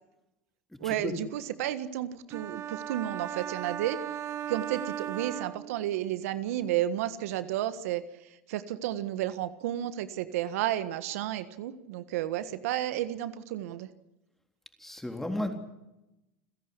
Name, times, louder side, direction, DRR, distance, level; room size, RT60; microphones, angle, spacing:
voice 1, 0.8-4.0 4.5-13.9, right 12 dB, 80° right, 13 dB, 1.5 m, -32 dB
sound 1, 2.3-6.2, right 10 dB, 35° right, 1.0 m, -37 dB
voice 2, 14.8-15.5, left 1 dB, 5° left, 5 dB, 3.7 m, -33 dB
29.5 x 11.0 x 9.8 m, 0.96 s
supercardioid pair, 125°, 8 cm